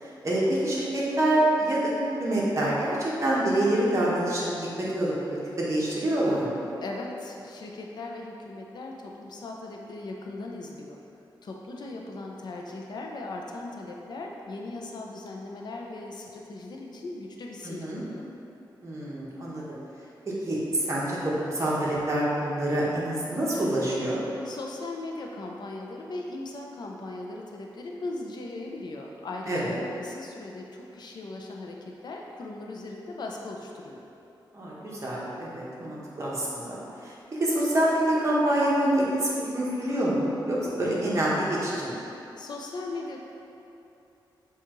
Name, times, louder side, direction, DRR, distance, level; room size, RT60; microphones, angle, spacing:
voice 1, 0.0-1.9 2.2-6.6 17.6-18.0 18.8-19.6 20.4-24.2 29.5-29.8 34.5-42.0, right 1 dB, 35° right, -6 dB, 1.0 m, -26 dB
voice 2, 6.8-11.0 11.4-18.2 24.4-34.0 42.4-43.2, left 2 dB, 60° left, 0 dB, 0.5 m, -38 dB
7.1 x 2.4 x 3.0 m, 2.8 s
wide cardioid pair, 100°, 8 cm